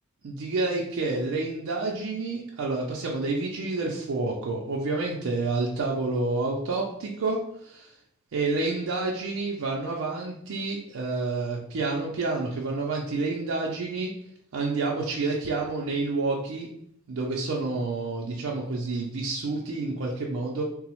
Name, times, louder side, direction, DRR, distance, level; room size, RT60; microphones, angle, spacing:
voice 1, 0.2-7.4 7.6-7.9 8.3-14.1 14.5-16.7 17.1-20.6, right 3 dB, 65° right, -3 dB, 0.4 m, -29 dB
3.7 x 2.0 x 2.9 m, 0.72 s
head